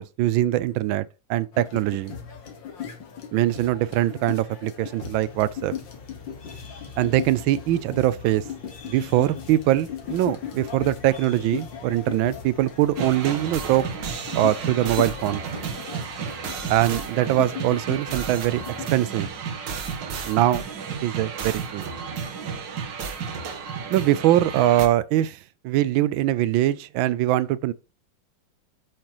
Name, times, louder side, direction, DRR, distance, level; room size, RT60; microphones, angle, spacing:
voice 1, 0.0-2.1 3.3-5.7 7.0-8.4 8.8-13.9 14.3-15.4 16.7-18.6 18.9-19.3 20.2-20.7 21.0-21.8 23.9-27.7, right 14 dB, 85° right, 1.4 m, -22 dB
sound 1, 1.5-19.0, left 8 dB, 70° left, 2.3 m, -38 dB
sound 2, 5.1-15.5, left 4 dB, 30° left, 1.5 m, -46 dB
sound 3, 13.0-24.9, right 6 dB, 70° right, 1.9 m, -32 dB
8.7 x 7.9 x 3.0 m
omnidirectional pair, 2.1 m